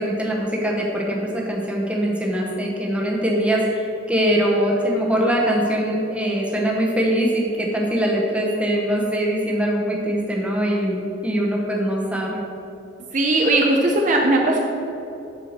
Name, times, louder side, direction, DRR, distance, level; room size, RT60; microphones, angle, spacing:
voice 1, 0.0-12.4, equal, 5° right, -2 dB, 1.0 m, -22 dB
voice 2, 13.1-14.6, right 2 dB, 40° right, 0 dB, 0.7 m, -18 dB
8.0 x 4.7 x 6.5 m, 2.8 s
head